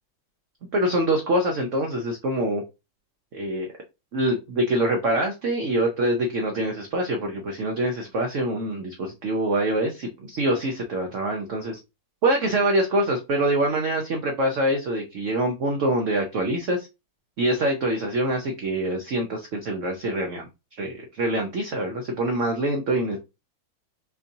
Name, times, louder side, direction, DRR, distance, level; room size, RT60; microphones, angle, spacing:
voice 1, 0.7-2.6 3.3-3.7 4.1-11.8 12.2-16.9 17.4-20.5 20.8-23.2, right 1 dB, 70° right, 2 dB, 0.7 m, -25 dB
4.4 x 2.6 x 2.6 m, 0.26 s
omnidirectional pair, 2.1 m